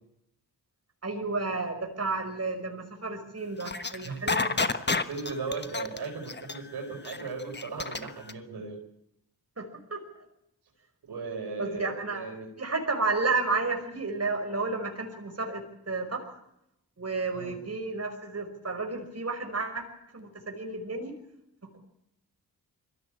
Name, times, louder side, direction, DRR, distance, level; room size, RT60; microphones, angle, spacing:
voice 1, 1.0-4.8 9.6-10.0 11.6-12.3 12.6-16.4 17.0-19.8 20.1-21.2, right 3 dB, 40° right, 4 dB, 5.3 m, -32 dB
sound 1, 3.6-8.3, left 3 dB, 25° left, 1.3 m, -30 dB
voice 2, 4.0-4.6 4.9-8.8 11.0-12.5 17.3-17.6, right 4 dB, 80° right, 1 dB, 4.8 m, -37 dB
22.0 x 15.5 x 8.6 m, 0.79 s
cardioid pair, 50°, 39 cm